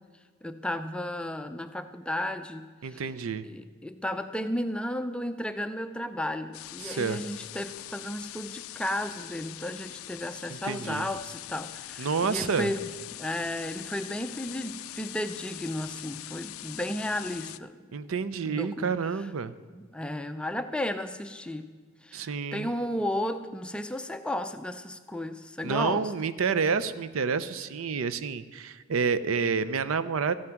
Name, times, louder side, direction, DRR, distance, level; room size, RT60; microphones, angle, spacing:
voice 1, 0.4-3.1 3.4-17.8 18.5-18.9 19.7-21.7 22.0-26.1, left 1 dB, 5° left, 9 dB, 0.4 m, -34 dB
voice 2, 2.8-3.5 6.8-7.2 10.5-11.1 12.0-12.7 17.9-19.5 22.1-22.7 25.6-30.3, right 5 dB, 75° right, 14 dB, 0.5 m, -29 dB
sound 1, 6.5-17.6, left 15 dB, 75° left, 0.3 m, -42 dB
14.0 x 9.7 x 5.8 m, 1.5 s
head